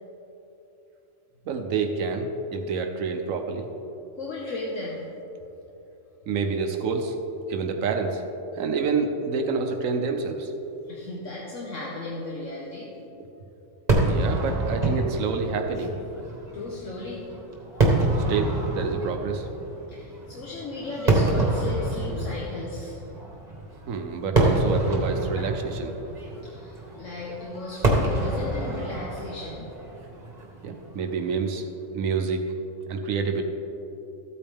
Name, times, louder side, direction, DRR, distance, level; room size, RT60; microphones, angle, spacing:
voice 1, 1.4-3.7 6.3-7.2 7.5-8.2 8.5-10.5 14.1-16.0 18.2-19.5 23.9-26.0 30.6-31.6 31.9-32.4 32.9-33.4, right 4 dB, 90° right, 5 dB, 1.2 m, -28 dB
voice 2, 4.2-5.0 10.9-12.9 16.5-17.3 19.9-23.0 25.4-25.5 26.4-29.7, left 2 dB, 75° left, -4 dB, 1.5 m, -35 dB
Fireworks, 13.9-31.2, right 2 dB, 35° right, 1.5 m, -27 dB
13.5 x 8.7 x 3.5 m, 2.9 s
omnidirectional pair, 1.3 m